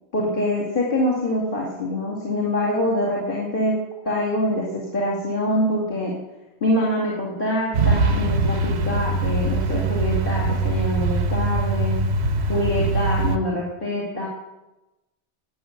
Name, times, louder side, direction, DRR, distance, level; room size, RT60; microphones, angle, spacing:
voice 1, 0.1-6.2 6.6-12.1 12.5-14.3, left 1 dB, 45° left, -3 dB, 2.6 m, -25 dB
Truck, 7.7-13.4, right 2 dB, 65° right, 1.1 m, -22 dB
12.0 x 8.4 x 8.0 m, 1.0 s
omnidirectional pair, 1.2 m